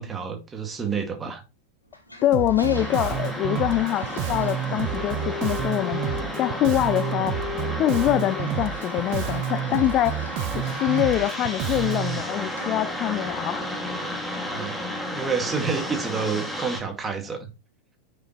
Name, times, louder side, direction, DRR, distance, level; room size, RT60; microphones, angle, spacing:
voice 1, 0.0-1.4 14.4-14.8 15.1-17.5, right 5 dB, 15° right, 2.2 m, -29 dB
Toilet flush, 1.9-14.8, left 1 dB, 85° left, 2.6 m, -44 dB
voice 2, 2.2-6.0 6.4-14.2, left 14 dB, 35° left, 0.5 m, -25 dB
Bass guitar, 2.3-12.2, right 11 dB, 45° right, 0.8 m, -30 dB
sound 1, 2.7-16.8, left 1 dB, ahead, 2.4 m, -32 dB
10.0 x 6.3 x 3.2 m
figure-of-eight pair, 90°, 0 cm